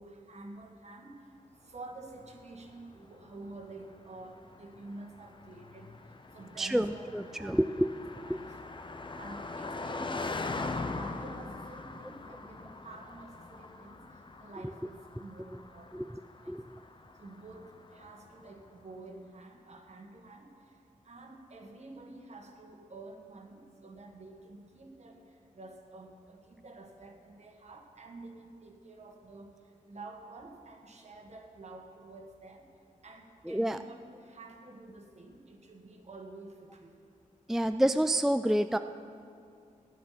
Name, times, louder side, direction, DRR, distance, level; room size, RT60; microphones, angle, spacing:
voice 1, 0.0-1.3 1.6-7.1 7.4-7.7 8.3-8.6 9.2-16.8 17.2-32.7 33.0-37.1, right 2 dB, 55° right, 3 dB, 1.8 m, -49 dB
Car passing by, 2.2-18.6, left 3 dB, 35° left, 0.8 m, -42 dB
voice 2, 6.6-7.9 8.3-8.4 15.9-16.1 16.5-16.8 33.5-33.8 37.5-38.8, right 1 dB, 5° right, 10 dB, 0.3 m, -28 dB
14.0 x 9.4 x 6.0 m, 2.4 s
cardioid pair, 65°, 14 cm